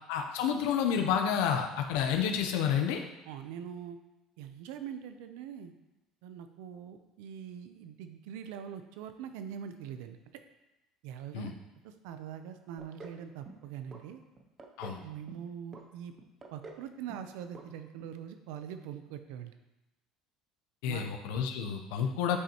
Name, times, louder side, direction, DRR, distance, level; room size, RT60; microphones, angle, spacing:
voice 1, 0.1-3.0 11.3-11.5 14.8-15.0 20.8-22.4, left 8 dB, 85° left, 4 dB, 0.6 m, -30 dB
voice 2, 3.3-4.0 4.4-5.7 6.2-10.4 11.0-11.5 11.8-14.2 15.0-16.1 16.5-19.5 20.8-21.1, right 9 dB, 85° right, 8 dB, 0.5 m, -43 dB
sound 1, 12.8-13.2 13.5-14.0 14.4-15.0 15.3-15.8 16.2-16.8 17.1-17.3 17.5-17.7 18.0-18.1, right 3 dB, 20° right, 0.5 m, -48 dB
8.1 x 5.3 x 2.9 m, 0.99 s
cardioid pair, 170°, 0 cm